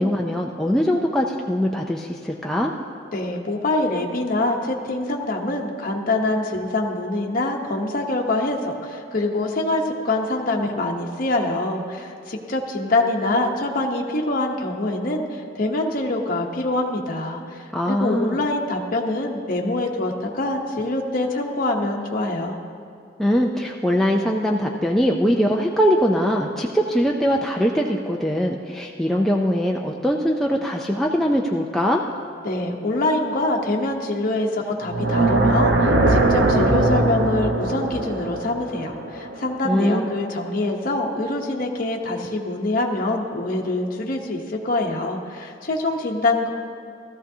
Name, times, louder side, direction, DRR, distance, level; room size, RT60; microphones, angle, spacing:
voice 1, 0.0-2.7 17.7-18.4 23.2-32.0 39.6-40.1, equal, ahead, -1 dB, 0.4 m, -21 dB
voice 2, 3.1-22.6 32.4-46.5, left 2 dB, 50° left, 0 dB, 0.9 m, -25 dB
sound 1, 34.8-40.0, right 2 dB, 75° right, 0.9 m, -20 dB
16.5 x 13.5 x 2.8 m, 2.3 s
head